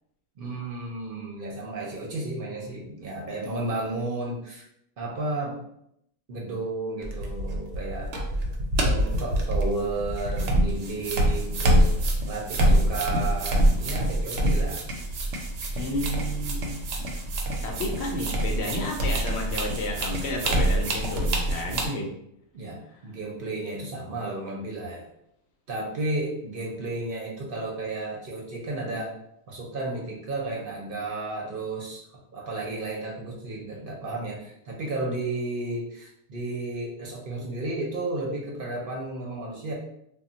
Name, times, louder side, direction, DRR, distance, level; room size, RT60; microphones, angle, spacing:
voice 1, 0.4-4.6 5.0-5.6 6.3-8.1 8.8-11.9 12.3-14.8 15.8-16.0 22.5-25.1 25.7-29.1 29.5-32.0 32.3-39.7, right 2 dB, 55° right, -3 dB, 0.7 m, -33 dB
sound 1, 7.0-21.9, right 1 dB, 85° right, 0.9 m, -25 dB
voice 2, 15.8-16.8 17.6-22.1, left 1 dB, 70° left, 1 dB, 0.8 m, -31 dB
2.2 x 2.1 x 3.8 m, 0.76 s
omnidirectional pair, 1.2 m